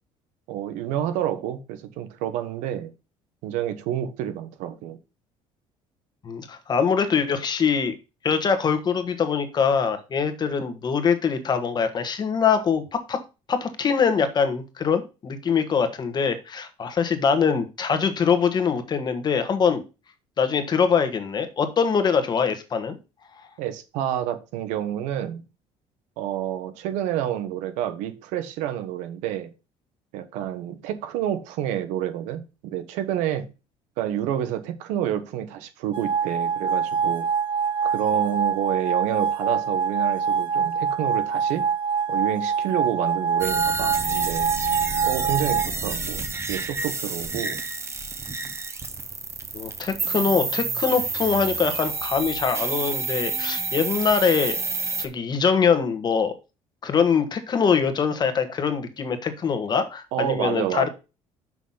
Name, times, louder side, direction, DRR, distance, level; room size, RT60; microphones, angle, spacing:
voice 1, 0.5-2.9 3.4-5.0 23.6-25.4 26.2-29.5 30.1-33.5 34.0-37.3 37.8-41.7 42.1-44.5 45.0-47.6 60.1-60.9, right 11 dB, 90° right, 1.2 m, -29 dB
voice 2, 6.2-7.9 8.2-13.2 13.5-19.8 20.4-23.0 49.5-54.6 55.0-56.3 56.8-60.9, left 6 dB, 35° left, 1.5 m, -23 dB
sound 1, 35.9-45.6, right 6 dB, 45° right, 1.6 m, -25 dB
sound 2, 43.4-55.1, right 4 dB, 20° right, 1.0 m, -29 dB
6.2 x 5.7 x 5.6 m
cardioid pair, 120°, 12 cm